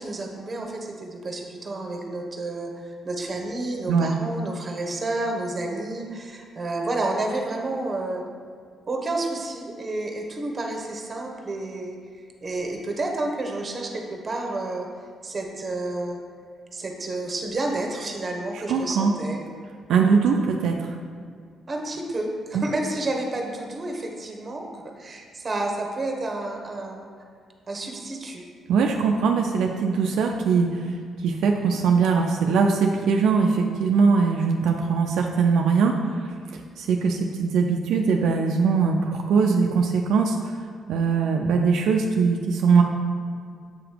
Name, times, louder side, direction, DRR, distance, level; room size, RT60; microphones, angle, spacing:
voice 1, 0.0-8.2 8.9-12.0 12.4-14.9 15.2-16.2 16.7-19.4 21.7-27.1 27.7-28.5, right 2 dB, 30° right, 2 dB, 1.0 m, -30 dB
voice 2, 3.9-4.2 18.5-19.1 19.9-20.9 22.5-22.6 28.7-30.9 31.2-40.6 40.9-42.8, right 5 dB, 80° right, 2 dB, 0.4 m, -21 dB
7.7 x 3.0 x 5.0 m, 2.1 s
cardioid pair, 90°, 0 cm